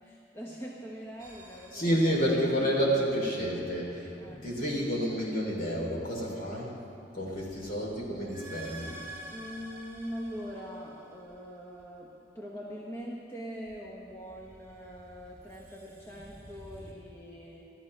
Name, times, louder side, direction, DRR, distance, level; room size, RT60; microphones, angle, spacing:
voice 1, 0.0-2.4 4.2-4.5 7.3-7.6 9.3-17.7, equal, 15° left, -4 dB, 1.1 m, -43 dB
sound 1, 1.2-3.1 7.0-11.6 14.1-16.9, right 1 dB, 20° right, 2.8 m, -50 dB
voice 2, 1.7-6.7 7.1-8.9, equal, 55° left, -3 dB, 3.2 m, -29 dB
21.0 x 13.5 x 3.3 m, 2.8 s
head